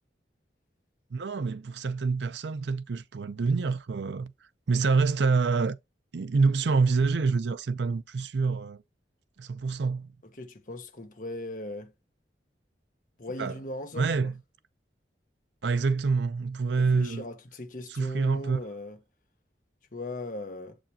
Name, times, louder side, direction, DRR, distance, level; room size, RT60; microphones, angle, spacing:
voice 1, 1.1-4.3 4.7-5.8 6.1-8.8 9.4-10.1 13.4-13.5 14.0-14.3 15.6-17.2 17.9-18.6, right 4 dB, 80° right, 0.5 m, -26 dB
voice 2, 10.4-11.9 13.2-14.3 16.8-19.0 19.9-20.8, left 1 dB, 50° left, 1.2 m, -38 dB
7.5 x 5.0 x 2.8 m
head